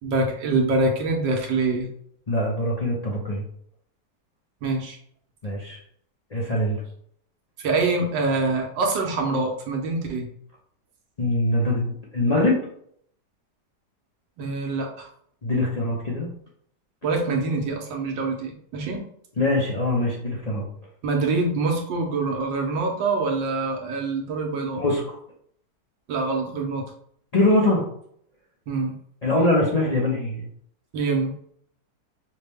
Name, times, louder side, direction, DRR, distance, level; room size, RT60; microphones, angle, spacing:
voice 1, 0.0-1.9 4.6-5.0 7.6-10.3 14.4-15.1 17.0-19.0 21.0-24.8 26.1-26.9 28.7-29.0 30.9-31.3, right 3 dB, 85° right, 2 dB, 1.5 m, -25 dB
voice 2, 2.3-3.4 5.4-5.8 6.3-6.8 11.2-12.6 15.4-16.3 19.4-20.6 24.8-25.0 27.3-27.9 29.2-30.5, left 1 dB, 60° left, -4 dB, 0.4 m, -23 dB
5.7 x 2.2 x 3.4 m, 0.65 s
omnidirectional pair, 1.9 m